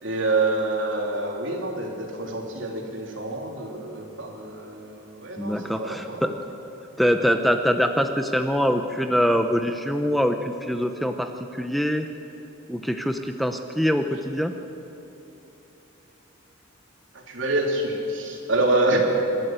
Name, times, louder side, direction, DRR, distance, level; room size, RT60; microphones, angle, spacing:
voice 1, 0.0-6.2 17.3-19.0, right 2 dB, 65° right, 1 dB, 3.4 m, -26 dB
voice 2, 5.4-6.3 7.0-12.1 12.7-14.5, equal, ahead, 6 dB, 0.7 m, -24 dB
26.0 x 12.5 x 9.0 m, 3.0 s
head